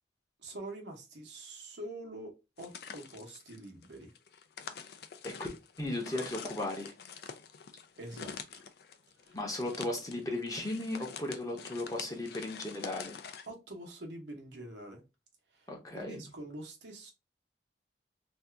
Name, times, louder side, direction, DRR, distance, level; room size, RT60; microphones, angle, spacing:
voice 1, 0.4-4.1 8.0-8.7 9.2-9.4 13.5-15.0 15.5-17.1, right 1 dB, 85° right, 1.0 m, -46 dB
sound 1, 2.6-13.5, left 6 dB, 65° left, 0.4 m, -46 dB
voice 2, 5.8-6.9 9.3-13.2 15.7-16.2, left 1 dB, 20° left, 0.7 m, -36 dB
2.7 x 2.3 x 3.3 m
head